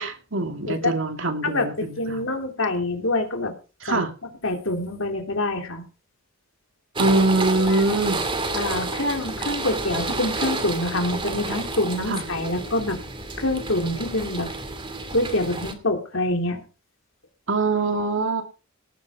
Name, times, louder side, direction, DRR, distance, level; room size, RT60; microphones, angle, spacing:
voice 1, 0.0-2.2 3.8-4.1 7.0-8.2 12.1-12.2 17.5-18.4, right 2 dB, 65° right, 6 dB, 2.5 m, -23 dB
voice 2, 1.4-3.5 3.9-4.0 4.4-5.8 7.5-7.8 8.5-13.0 13.4-14.5 15.1-16.6, left 2 dB, 65° left, 4 dB, 3.1 m, -26 dB
sound 1, 7.0-15.7, right 3 dB, 25° right, 2.6 m, -30 dB
18.5 x 9.4 x 4.9 m, 0.35 s
head